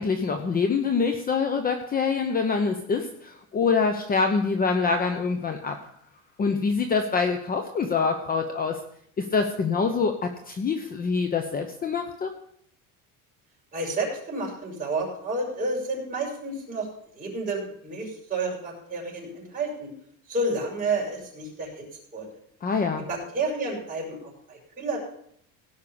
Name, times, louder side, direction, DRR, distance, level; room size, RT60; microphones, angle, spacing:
voice 1, 0.0-5.8 6.4-8.8 9.2-12.3 22.6-23.0, left 5 dB, 25° left, 6 dB, 0.9 m, -25 dB
voice 2, 13.7-16.9 17.1-19.9 20.3-21.8 22.1-22.3 23.1-25.0, right 2 dB, 20° right, -3 dB, 5.5 m, -30 dB
17.0 x 5.7 x 7.0 m, 0.68 s
cardioid pair, 155°, 36 cm